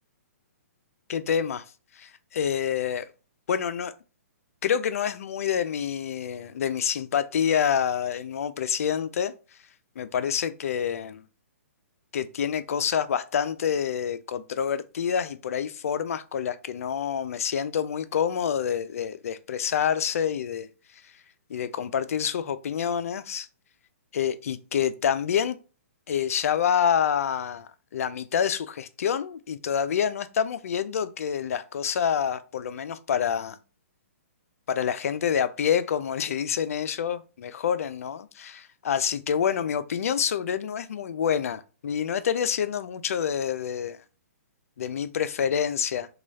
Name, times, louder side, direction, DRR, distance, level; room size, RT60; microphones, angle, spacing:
voice 1, 1.1-1.6 2.0-3.1 3.5-3.9 4.6-9.3 10.0-11.2 12.1-20.7 21.5-23.5 24.1-25.6 26.1-33.6 34.7-44.0 44.8-46.1, left 8 dB, 70° left, 0.4 m, -27 dB
3.0 x 2.3 x 2.7 m
hypercardioid pair, 140°, 8 cm